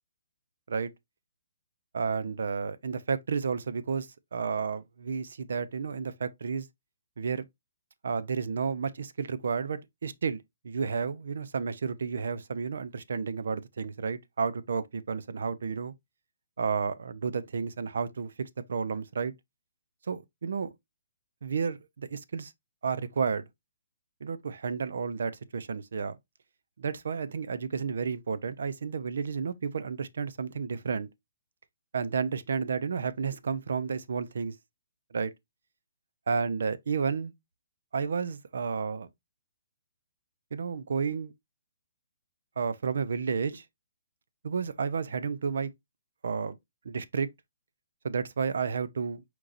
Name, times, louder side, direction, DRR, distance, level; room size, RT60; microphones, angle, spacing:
voice 1, 1.9-6.7 7.2-7.5 8.0-15.9 16.6-19.3 20.1-20.7 21.4-22.5 22.8-23.4 24.2-26.2 26.8-31.1 31.9-34.5 35.1-35.3 36.3-37.3 37.9-39.1 40.5-41.3 42.6-43.6 44.4-45.7 46.2-46.6 46.8-47.3 48.0-49.2, right 5 dB, 65° right, 0.5 m, -31 dB
4.5 x 3.8 x 2.5 m
hypercardioid pair, 175°, 0 cm